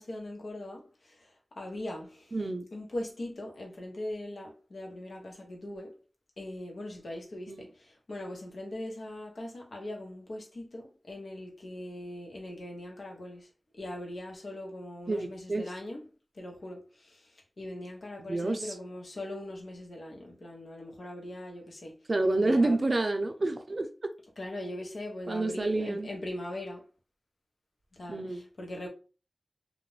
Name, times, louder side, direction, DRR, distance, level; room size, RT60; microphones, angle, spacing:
voice 1, 0.0-2.4 2.7-5.9 6.4-13.5 13.8-16.0 16.3-22.0 22.4-22.8 24.4-26.9 27.9-28.9, left 1 dB, 80° left, 0.8 m, -40 dB
voice 2, 2.3-2.7 7.5-7.7 15.1-15.7 18.3-18.7 22.1-23.9 25.3-26.1 28.1-28.4, right 2 dB, 55° right, 0.4 m, -28 dB
2.4 x 2.1 x 3.1 m
wide cardioid pair, 50°, 0 cm